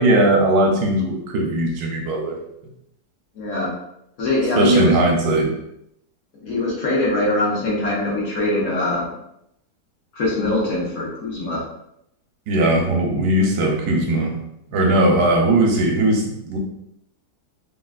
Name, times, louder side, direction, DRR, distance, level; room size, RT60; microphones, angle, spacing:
voice 1, 0.0-2.4 4.6-5.5 12.5-14.3 14.7-16.6, right 1 dB, 80° right, 1 dB, 1.2 m, -18 dB
voice 2, 3.4-3.7 4.2-4.9 6.4-9.0 10.1-11.6, left 1 dB, 55° left, -4 dB, 1.0 m, -22 dB
3.4 x 2.4 x 2.3 m, 0.77 s
omnidirectional pair, 1.7 m